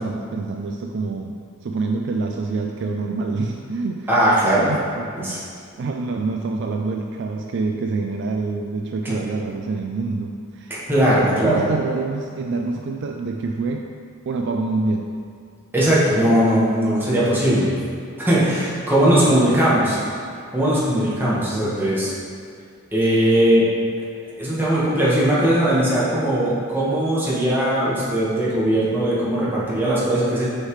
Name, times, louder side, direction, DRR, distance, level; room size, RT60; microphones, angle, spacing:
voice 1, 0.0-4.1 4.6-5.5 5.8-10.7 11.2-13.8 14.3-15.1 19.0-19.6, right 3 dB, 55° right, 2 dB, 0.3 m, -26 dB
voice 2, 4.1-4.7 5.1-5.4 9.0-9.1 10.7-11.6 15.7-17.7 18.2-20.0 20.5-22.1 22.9-23.6 24.4-30.5, right 1 dB, 10° right, -9 dB, 1.4 m, -19 dB
6.4 x 5.6 x 3.2 m, 2.3 s
head